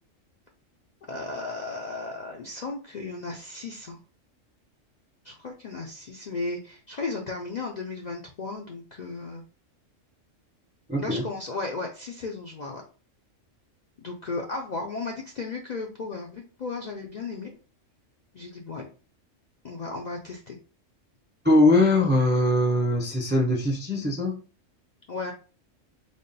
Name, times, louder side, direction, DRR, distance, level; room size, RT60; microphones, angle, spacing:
voice 1, 1.1-4.0 5.2-9.4 11.0-12.8 14.0-17.6 18.3-18.9 19.6-20.6 25.1-25.3, left 3 dB, 55° left, 0 dB, 0.5 m, -35 dB
voice 2, 10.9-11.2 21.4-24.4, left 1 dB, 15° right, 0 dB, 0.3 m, -21 dB
3.5 x 2.2 x 3.9 m, 0.36 s
omnidirectional pair, 1.3 m